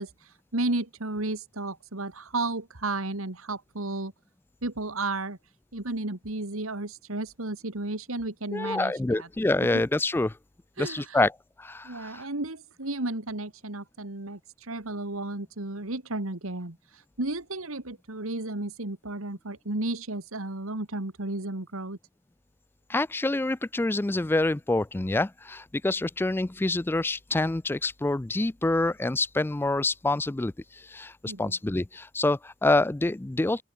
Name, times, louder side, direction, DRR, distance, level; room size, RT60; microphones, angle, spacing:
voice 1, 0.0-4.1 4.6-5.4 5.7-9.3 10.8-11.2 11.8-22.0 31.3-31.6, right 2 dB, 85° right, 2.4 m, -33 dB
voice 2, 8.5-10.3 10.8-11.3 11.6-12.3 22.9-33.6, left 2 dB, 10° left, 0.3 m, -27 dB
open air
head